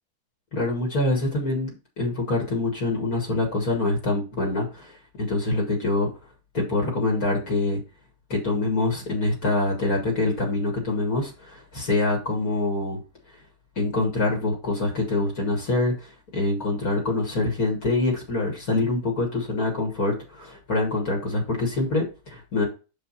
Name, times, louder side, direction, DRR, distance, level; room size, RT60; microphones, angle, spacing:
voice 1, 0.5-1.7 2.0-4.9 5.2-6.1 6.5-7.8 8.3-13.0 13.8-22.7, left 2 dB, 65° left, 0 dB, 2.4 m, -25 dB
6.2 x 5.0 x 4.1 m, 0.31 s
omnidirectional pair, 1.7 m